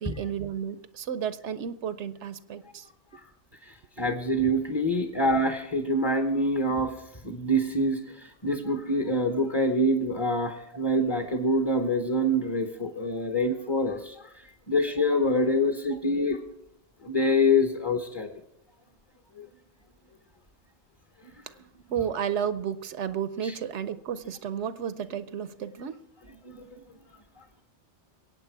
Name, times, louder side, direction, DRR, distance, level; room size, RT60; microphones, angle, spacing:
voice 1, 0.0-2.8 15.9-16.0 21.9-26.0, right 8 dB, 75° right, 13 dB, 1.0 m, -32 dB
voice 2, 4.0-6.9 7.2-14.1 14.7-16.4 17.0-18.3 19.4-19.5 23.4-23.5 26.4-26.8, left 1 dB, 25° left, 5 dB, 1.0 m, -25 dB
23.0 x 8.8 x 4.6 m, 0.81 s
omnidirectional pair, 1.2 m